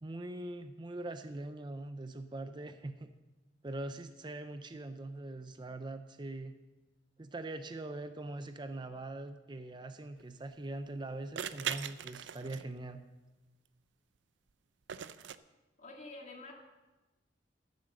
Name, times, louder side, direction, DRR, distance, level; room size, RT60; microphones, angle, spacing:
voice 1, 0.0-3.1 3.6-6.6 7.2-13.0, right 2 dB, 25° right, 9 dB, 0.5 m, -42 dB
sound 1, 10.2-10.3 11.4-12.9 14.9-15.4, right 9 dB, 75° right, 0.5 m, -39 dB
voice 2, 15.8-16.5, left 2 dB, 40° left, 1 dB, 2.2 m, -48 dB
13.5 x 7.8 x 6.5 m, 1.1 s
head